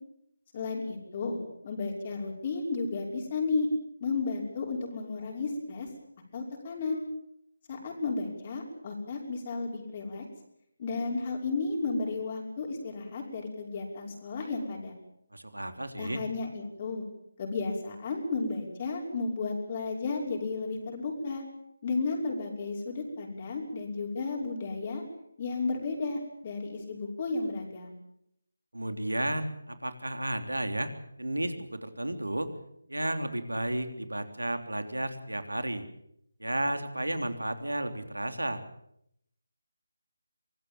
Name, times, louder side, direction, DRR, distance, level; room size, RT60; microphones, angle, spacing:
voice 1, 0.5-1.4 1.6-3.7 4.0-5.9 6.3-7.0 7.7-10.2 10.8-14.9 16.0-17.1 17.4-21.4 21.8-25.0 25.4-27.9, left 3 dB, 30° left, 0 dB, 5.7 m, -33 dB
voice 2, 15.3-16.2 28.7-30.9 31.2-32.5 32.9-35.9 36.4-38.6, right 1 dB, 85° right, 8 dB, 3.4 m, -32 dB
25.0 x 19.5 x 7.3 m, 0.74 s
figure-of-eight pair, 155°, 0 cm